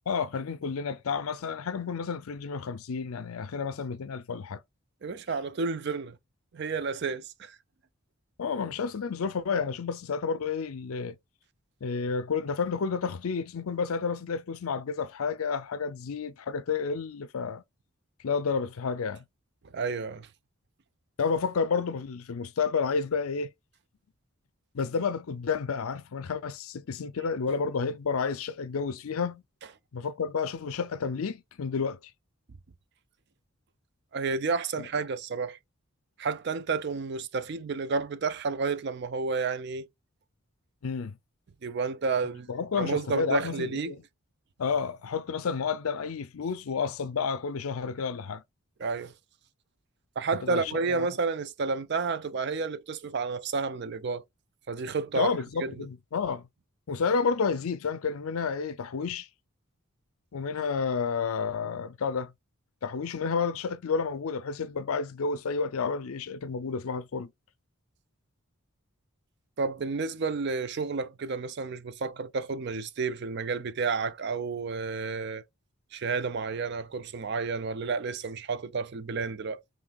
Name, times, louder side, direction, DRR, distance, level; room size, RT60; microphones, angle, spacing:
voice 1, 0.1-4.6 8.4-11.2 11.8-17.6 18.2-19.2 21.2-23.5 24.7-29.4 29.9-32.0 34.8-34.9 40.8-41.2 42.5-44.0 44.6-48.4 50.4-51.1 55.2-56.4 56.9-59.3 60.3-62.3 62.8-67.3, left 5 dB, 75° left, 0.5 m, -30 dB
voice 2, 5.0-6.2 6.5-7.6 19.7-20.3 34.1-35.6 36.2-39.9 41.6-42.5 42.8-43.9 48.8-49.1 50.2-54.2 54.7-55.3 55.6-55.9 69.6-75.4 75.9-79.6, right 4 dB, 50° right, 0.4 m, -31 dB
5.5 x 3.2 x 2.4 m
head